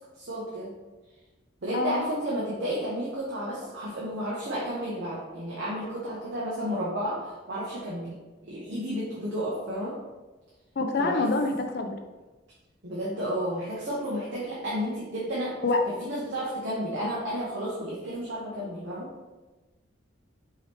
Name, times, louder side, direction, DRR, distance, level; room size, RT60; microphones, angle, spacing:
voice 1, 0.2-0.7 1.6-10.0 11.0-11.2 12.8-15.6 16.0-19.1, equal, 60° right, -7 dB, 0.9 m, -32 dB
voice 2, 10.8-12.0 15.6-15.9, left 3 dB, 55° left, 5 dB, 0.5 m, -26 dB
4.6 x 3.0 x 3.3 m, 1.2 s
head